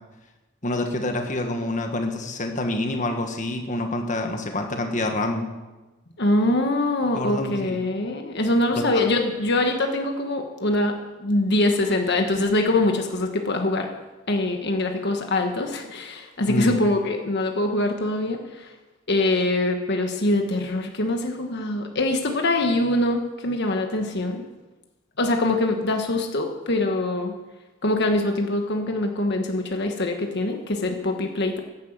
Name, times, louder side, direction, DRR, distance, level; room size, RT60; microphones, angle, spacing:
voice 1, 0.6-5.5 7.1-7.8 8.7-9.0 16.5-16.8, left 2 dB, 35° left, 4 dB, 1.6 m, -27 dB
voice 2, 6.2-10.9 11.2-13.9 14.3-18.7 19.1-24.4 25.2-27.3 27.8-31.6, left 2 dB, 55° left, 4 dB, 1.4 m, -23 dB
12.0 x 10.5 x 8.1 m, 1.1 s
head